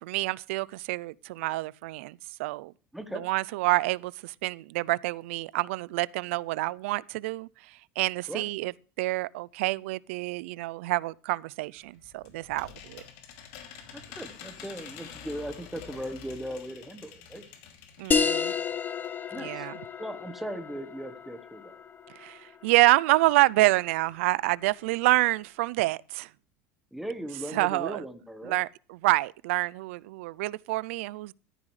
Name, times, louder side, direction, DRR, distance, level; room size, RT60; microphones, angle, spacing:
voice 1, 0.0-2.7 3.1-7.5 8.0-8.7 9.0-13.0 18.0-18.5 19.4-19.7 22.2-26.3 27.5-28.0 28.4-31.3, right 20 dB, 80° right, 0.4 m, -27 dB
voice 2, 2.9-3.3 8.3-8.4 13.9-17.4 19.3-19.7 20.0-21.7 26.9-28.6, equal, 5° right, 1.3 m, -38 dB
sound 1, 11.8-18.7 19.0-19.1 19.4-19.5, left 7 dB, 75° left, 2.8 m, -47 dB
sound 2, 18.1-23.2, left 6 dB, 25° left, 0.9 m, -31 dB
14.0 x 9.9 x 3.2 m
supercardioid pair, 110°, 7 cm